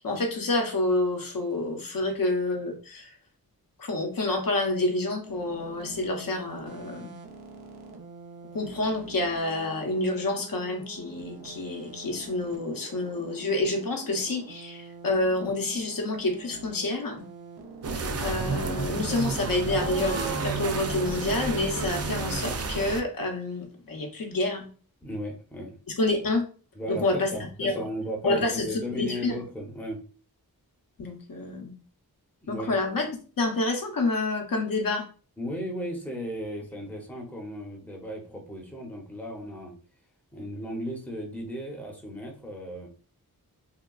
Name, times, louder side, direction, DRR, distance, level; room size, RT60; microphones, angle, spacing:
voice 1, 0.0-3.1 3.8-7.1 8.5-17.3 18.2-24.7 26.0-26.4 26.9-27.3 27.6-27.8 28.2-29.4 31.0-31.7 32.5-33.1 33.4-35.0, left 2 dB, 65° left, 3 dB, 0.7 m, -28 dB
sound 1, 5.2-23.0, right 3 dB, 90° right, 0.6 m, -45 dB
sound 2, 17.8-23.0, right 4 dB, 40° right, 0.4 m, -30 dB
voice 2, 25.0-25.7 26.7-30.0 32.4-32.8 35.4-39.7 40.3-42.9, equal, 5° left, 0 dB, 0.6 m, -35 dB
3.6 x 2.3 x 2.3 m, 0.39 s
wide cardioid pair, 105°, 38 cm